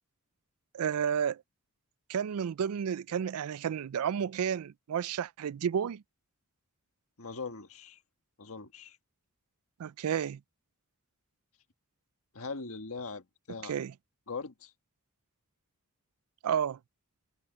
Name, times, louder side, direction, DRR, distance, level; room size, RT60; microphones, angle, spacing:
voice 1, 0.7-1.4 2.1-6.0 9.8-10.4 13.7-13.9 16.4-16.8, right 8 dB, 75° right, 0.4 m, -31 dB
voice 2, 7.2-8.0 8.4-9.0 12.3-13.7 14.3-14.7, left 4 dB, 70° left, 1.6 m, -41 dB
head